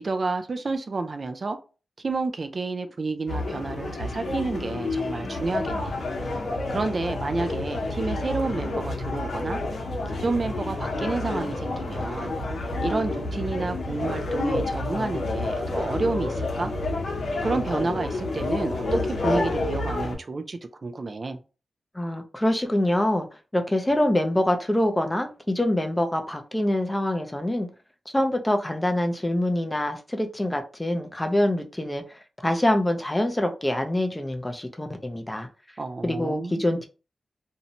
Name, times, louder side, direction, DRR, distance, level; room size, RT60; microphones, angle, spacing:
voice 1, 0.0-1.6 2.0-6.0 6.7-9.6 10.1-12.3 12.8-16.7 17.4-21.4 35.8-36.6, right 3 dB, 45° right, 8 dB, 0.3 m, -30 dB
sound 1, 3.3-20.2, left 2 dB, 85° left, 0.7 m, -29 dB
voice 2, 21.9-23.3 23.5-27.7 28.1-35.5 36.0-36.9, left 1 dB, 15° left, 5 dB, 0.4 m, -25 dB
2.6 x 2.1 x 2.8 m, 0.33 s
wide cardioid pair, 90°, 0 cm